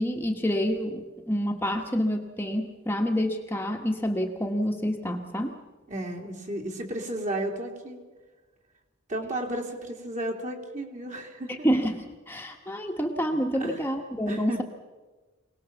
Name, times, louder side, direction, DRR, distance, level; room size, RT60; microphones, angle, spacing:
voice 1, 0.0-5.6 11.5-14.6, equal, 10° left, 2 dB, 1.4 m, -28 dB
voice 2, 5.9-8.0 9.1-11.7 13.6-13.8 14.3-14.6, right 1 dB, 40° right, 2 dB, 3.3 m, -33 dB
25.5 x 19.0 x 7.2 m, 1.3 s
head